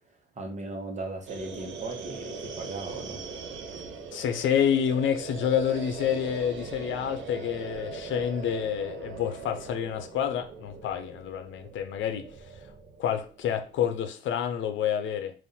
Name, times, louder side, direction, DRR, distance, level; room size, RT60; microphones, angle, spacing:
voice 1, 0.3-3.2, right 2 dB, 35° right, 1.2 m, -37 dB
sound 1, 1.3-14.0, right 4 dB, 70° right, 0.7 m, -41 dB
voice 2, 4.1-12.5 13.0-15.3, left 8 dB, 75° left, 0.6 m, -28 dB
3.6 x 2.6 x 4.1 m
cardioid pair, 90°, 20 cm